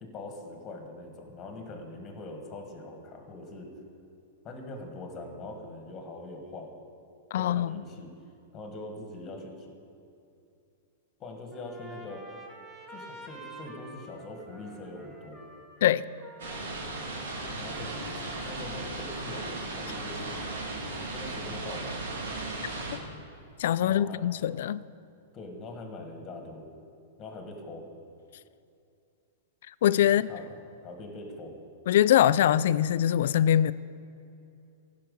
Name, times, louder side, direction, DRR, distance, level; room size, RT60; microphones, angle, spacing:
voice 1, 0.0-3.7 4.4-6.7 7.4-8.1 8.5-9.7 11.2-12.2 12.9-15.4 17.5-17.9 18.3-19.4 19.7-20.4 21.1-22.1 23.8-24.4 25.3-26.7 27.2-27.8 30.3-30.4 30.8-31.5, left 2 dB, 20° left, 3 dB, 1.6 m, -42 dB
voice 2, 7.3-7.8 15.8-16.0 23.6-24.8 29.8-30.3 31.9-33.7, left 11 dB, 65° left, 18 dB, 0.3 m, -23 dB
Trumpet, 11.5-18.8, right 1 dB, 10° right, 1.2 m, -49 dB
sound 1, 16.4-23.0, right 2 dB, 85° right, 2.1 m, -36 dB
15.0 x 5.8 x 5.4 m, 2.6 s
supercardioid pair, 155°, 0 cm